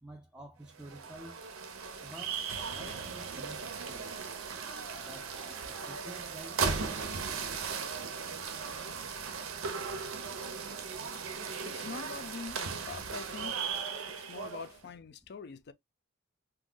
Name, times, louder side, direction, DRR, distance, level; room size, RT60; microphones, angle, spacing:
voice 1, 0.0-1.4 2.0-2.5 2.7-3.6 3.9-4.2 5.0-7.5, right 1 dB, 5° right, 0.4 m, -50 dB
sound 1, 0.7-14.8, right 5 dB, 90° right, 0.6 m, -37 dB
voice 2, 11.6-13.5 14.2-15.7, left 5 dB, 55° left, 0.4 m, -44 dB
2.5 x 2.2 x 3.7 m
head